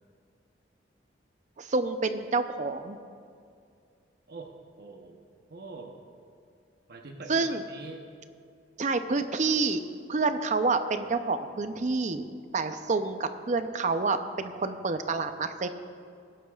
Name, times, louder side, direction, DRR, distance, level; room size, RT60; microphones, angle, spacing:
voice 1, 1.6-3.0 7.3-7.6 8.8-9.8 10.1-12.3 12.5-15.7, right 3 dB, 45° right, 9 dB, 0.6 m, -28 dB
voice 2, 4.8-5.2 5.5-6.0 6.9-8.1, right 3 dB, 60° right, 3 dB, 0.9 m, -44 dB
20.5 x 11.0 x 2.4 m, 2.3 s
head